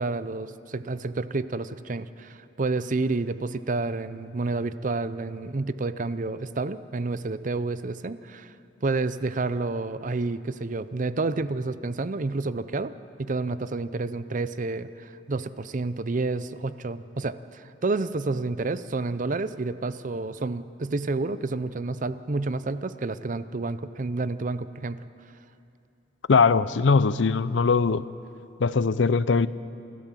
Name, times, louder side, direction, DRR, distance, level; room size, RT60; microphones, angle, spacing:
voice 1, 0.0-8.5 8.8-12.9 13.2-25.0, right 3 dB, 45° right, 14 dB, 0.6 m, -29 dB
voice 2, 26.3-28.1 28.6-29.5, left 4 dB, 80° left, 17 dB, 0.5 m, -21 dB
29.0 x 12.5 x 7.5 m, 2.6 s
head